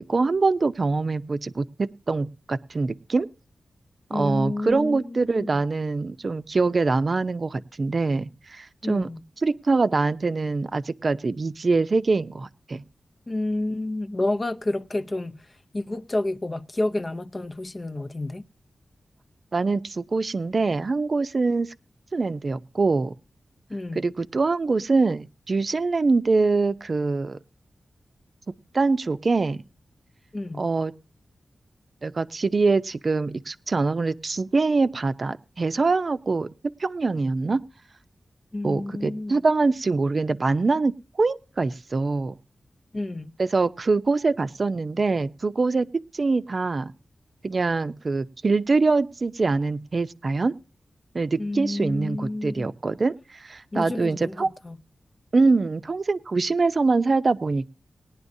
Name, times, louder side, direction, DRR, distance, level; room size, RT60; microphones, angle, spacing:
voice 1, 0.0-3.3 4.1-9.1 9.4-12.8 19.5-21.7 22.1-23.1 23.9-27.4 28.7-29.6 30.6-30.9 32.0-37.6 38.6-40.9 41.2-42.4 43.4-45.9 46.1-46.9 47.4-50.6 51.1-54.5 55.3-57.7, right 3 dB, 45° right, 0.7 m, -24 dB
voice 2, 4.1-5.5 8.8-9.2 13.3-15.5 15.7-18.4 23.7-24.0 30.3-30.7 38.5-39.3 42.9-43.3 51.4-52.7 53.7-54.8, left 2 dB, 30° left, 0.6 m, -30 dB
19.5 x 10.5 x 2.7 m
wide cardioid pair, 130°, 0 cm